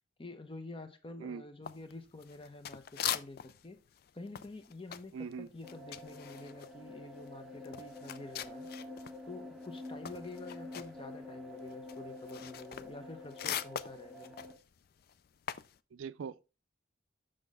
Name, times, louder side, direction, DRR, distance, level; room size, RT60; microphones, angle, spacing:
voice 1, 0.2-3.8 4.1-8.7 9.3-14.3, left 2 dB, 25° left, 0.8 m, -48 dB
sound 1, 1.7-3.7 3.9-9.2 9.5-15.8, left 10 dB, 50° left, 0.3 m, -42 dB
voice 2, 5.1-5.5 15.9-16.6, right 6 dB, 85° right, 0.4 m, -42 dB
sound 2, 5.6-14.5, left 2 dB, ahead, 0.9 m, -48 dB
6.4 x 6.0 x 3.5 m
head